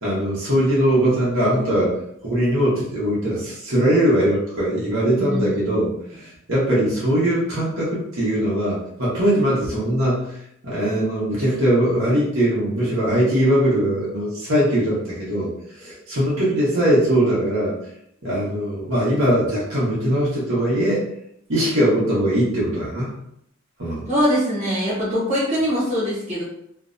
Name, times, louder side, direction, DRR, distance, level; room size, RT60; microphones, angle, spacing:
voice 1, 0.0-1.9 2.2-5.9 6.1-10.4 10.6-17.8 18.2-21.0 21.5-23.2 23.8-24.1, right 1 dB, 80° right, -7 dB, 0.9 m, -21 dB
voice 2, 5.2-6.0 24.1-26.4, equal, 35° right, -8 dB, 1.1 m, -23 dB
2.5 x 2.1 x 2.5 m, 0.75 s
head